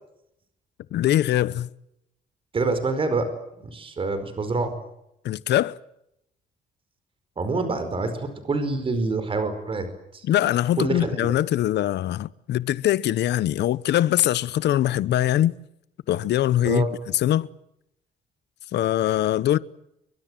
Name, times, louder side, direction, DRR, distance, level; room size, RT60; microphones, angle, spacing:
voice 1, 0.9-1.7 5.2-5.8 10.2-15.6 16.1-17.5 18.7-19.6, left 12 dB, 80° left, 0.9 m, -22 dB
voice 2, 2.5-3.3 3.6-4.7 7.4-9.9 10.1-10.2 10.8-11.2 16.6-16.9, right 3 dB, 30° right, 4.8 m, -26 dB
29.0 x 24.0 x 7.7 m
cardioid pair, 150°, 17 cm